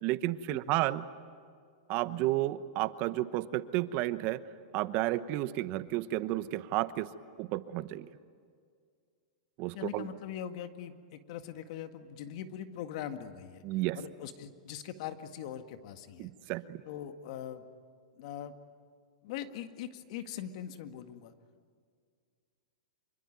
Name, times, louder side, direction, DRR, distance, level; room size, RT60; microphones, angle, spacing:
voice 1, 0.0-1.0 1.9-4.4 4.7-7.1 7.4-8.1 9.6-10.0 13.6-14.0 16.2-16.8, right 16 dB, 45° right, 14 dB, 1.0 m, -32 dB
voice 2, 9.7-13.6 14.0-16.3 16.9-17.7 18.2-18.5 19.2-21.3, left 10 dB, 55° left, 8 dB, 1.9 m, -41 dB
26.0 x 24.0 x 9.3 m, 2.1 s
hypercardioid pair, 125°, 4 cm